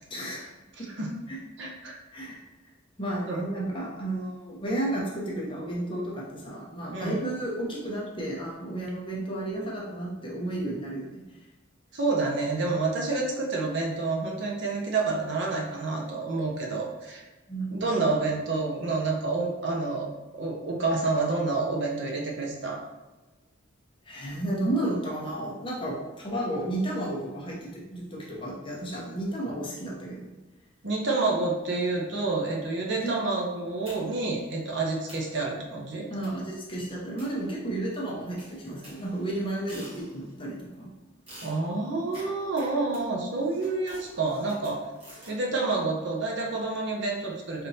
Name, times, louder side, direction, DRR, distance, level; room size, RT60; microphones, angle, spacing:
voice 1, 0.1-0.5 0.8-0.9 1.3-1.4 2.1-2.4 3.0-11.2 17.5-17.9 24.1-30.3 32.9-33.1 36.1-40.9, right 1 dB, 25° left, -4 dB, 0.8 m, -32 dB
voice 2, 0.8-1.2 1.6-2.0 3.3-3.5 6.9-7.2 11.9-17.2 17.7-20.1 20.3-22.8 30.8-36.1 41.4-44.9 45.3-47.7, right 3 dB, 60° right, -2 dB, 0.7 m, -28 dB
sound 1, 33.8-34.3 34.7-34.8 35.1-35.4 36.2-36.5 37.2-37.9 38.4-40.4 41.3-45.4, equal, 30° right, 1.4 m, -49 dB
4.0 x 3.4 x 2.7 m, 1.1 s
head